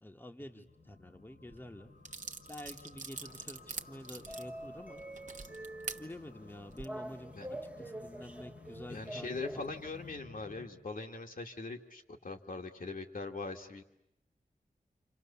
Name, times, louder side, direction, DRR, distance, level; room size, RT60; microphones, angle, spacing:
voice 1, 0.0-1.9 2.5-5.0 5.9-9.3, left 1 dB, 15° left, 5 dB, 1.3 m, -49 dB
sound 1, 0.6-10.7, left 3 dB, 90° left, 3.0 m, -55 dB
sound 2, 1.5-1.6 2.0-6.0 6.6-6.9, right 4 dB, 55° right, 1.2 m, -44 dB
sound 3, 3.1-10.1, right 1 dB, 10° right, 0.9 m, -47 dB
voice 2, 8.9-13.8, left 3 dB, 65° left, 3 dB, 2.1 m, -41 dB
29.5 x 26.5 x 7.0 m, 0.83 s
wide cardioid pair, 95°, 16 cm